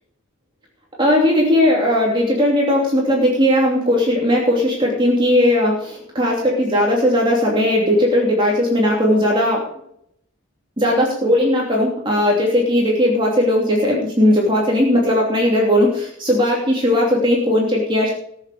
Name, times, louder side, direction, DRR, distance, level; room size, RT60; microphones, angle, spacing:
voice 1, 1.0-9.6 10.8-18.1, left 1 dB, 25° right, -3 dB, 2.8 m, -17 dB
20.0 x 7.3 x 5.0 m, 0.70 s
head